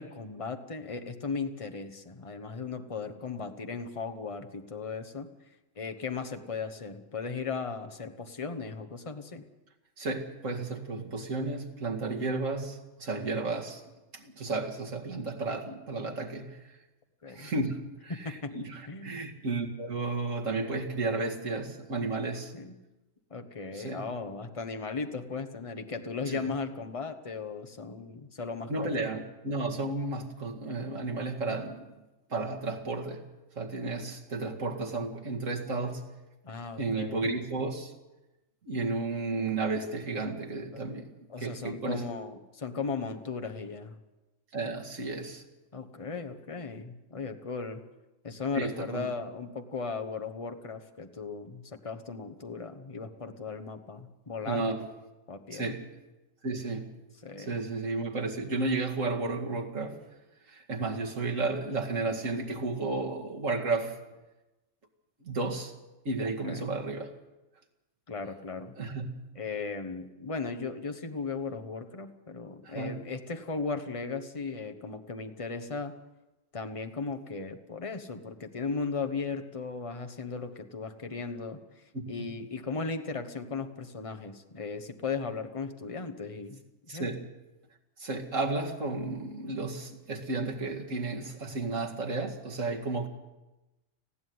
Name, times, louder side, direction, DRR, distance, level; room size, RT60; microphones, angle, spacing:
voice 1, 0.0-5.3 5.8-9.4 17.2-17.5 18.1-18.6 18.9-19.2 22.5-22.8 23.3-29.1 36.4-37.3 40.7-40.8 41.3-44.0 45.7-47.8 48.2-54.7 55.3-55.7 57.2-57.6 66.4-66.7 68.1-68.7 69.3-75.9 76.5-81.6 82.1-86.6 86.9-87.1, left 4 dB, 25° left, 7 dB, 1.3 m, -37 dB
voice 2, 10.0-13.8 14.1-16.8 17.3-22.5 23.7-24.1 26.3-26.5 28.7-31.9 32.3-33.3 33.6-36.1 36.8-37.9 38.6-41.1 41.4-42.1 44.5-45.4 48.5-49.1 54.4-54.9 55.5-55.8 56.4-56.9 57.4-60.0 60.5-64.0 65.2-65.7 66.0-67.1 68.8-69.2 72.6-73.0 81.9-82.0 86.9-87.2 88.0-93.1, right 3 dB, 80° right, 1 dB, 2.5 m, -33 dB
19.5 x 15.0 x 9.5 m, 1.1 s
omnidirectional pair, 1.3 m